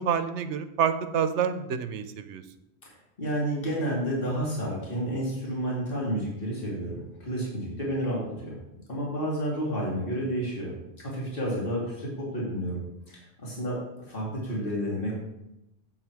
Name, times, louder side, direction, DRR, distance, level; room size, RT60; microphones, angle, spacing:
voice 1, 0.0-2.4, right 7 dB, 90° right, 11 dB, 1.0 m, -28 dB
voice 2, 2.8-8.6 8.9-12.8 13.1-15.1, equal, 50° left, -5 dB, 2.8 m, -31 dB
7.7 x 7.6 x 4.7 m, 0.89 s
omnidirectional pair, 1.2 m